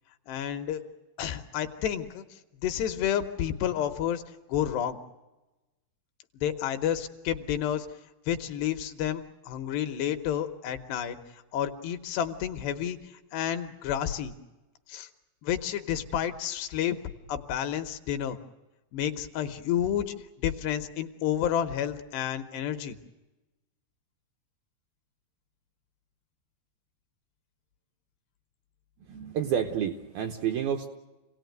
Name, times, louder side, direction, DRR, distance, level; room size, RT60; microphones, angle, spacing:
voice 1, 0.3-0.8 1.2-2.2 2.6-4.2 4.5-5.0 6.3-7.9 8.3-11.2 11.5-13.0 13.3-14.3 14.9-15.1 15.4-17.0 17.3-18.4 18.9-23.0, left 10 dB, 75° left, 7 dB, 2.8 m, -30 dB
voice 2, 29.1-30.9, right 9 dB, 75° right, 5 dB, 2.3 m, -29 dB
27.0 x 17.5 x 9.3 m, 1.1 s
omnidirectional pair, 5.3 m